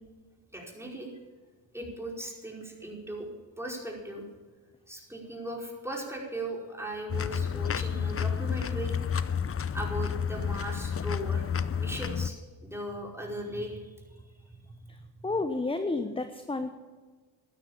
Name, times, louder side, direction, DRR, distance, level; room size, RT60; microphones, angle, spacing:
voice 1, 0.5-1.1 1.7-3.3 3.6-4.2 4.9-9.0 9.7-11.4 11.7-12.3 12.6-13.9 14.6-14.7, right 1 dB, 5° right, -2 dB, 5.2 m, -38 dB
sound 1, 7.1-12.3, left 7 dB, 30° left, 0.7 m, -30 dB
voice 2, 15.2-16.7, left 3 dB, 10° left, 8 dB, 1.0 m, -30 dB
12.5 x 10.5 x 7.2 m, 1.4 s
supercardioid pair, 55°, 49 cm